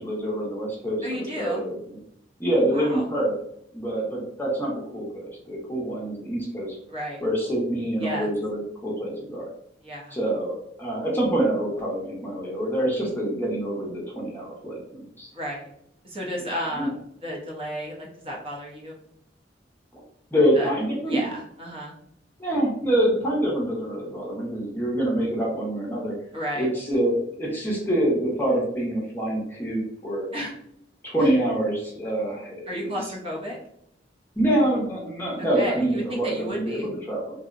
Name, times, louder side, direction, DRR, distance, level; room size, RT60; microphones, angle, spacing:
voice 1, 0.0-2.0 2.4-3.3 3.7-6.8 7.2-9.5 10.1-15.3 16.4-16.9 19.9-20.0 20.3-21.2 22.4-26.1 26.5-30.3 31.0-32.9 34.4-37.4, right 1 dB, 10° left, -3 dB, 0.6 m, -26 dB
voice 2, 1.0-1.6 2.7-3.0 6.9-7.2 8.0-8.3 9.8-10.1 15.3-15.7 16.0-19.0 20.6-20.7 21.1-21.9 26.3-26.7 30.3-30.5 32.7-33.6 35.6-36.9, equal, 30° right, -3 dB, 0.6 m, -32 dB
2.6 x 2.0 x 2.4 m, 0.74 s
head